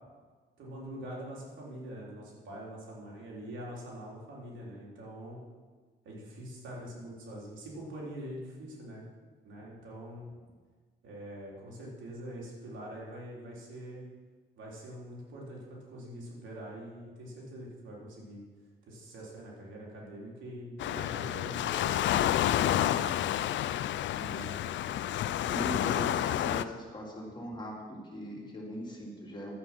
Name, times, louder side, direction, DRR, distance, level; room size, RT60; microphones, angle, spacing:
voice 1, 0.6-5.4 6.0-9.0 9.4-10.3 11.0-14.0 14.6-18.4 18.9-23.1, equal, 75° right, -4 dB, 3.9 m, -44 dB
Waves surf, 20.8-26.6, left 12 dB, 70° left, 0.5 m, -29 dB
voice 2, 24.1-24.6 25.4-29.5, equal, 25° left, -3 dB, 3.3 m, -40 dB
11.5 x 8.3 x 6.1 m, 1.5 s
cardioid pair, 90°, 20 cm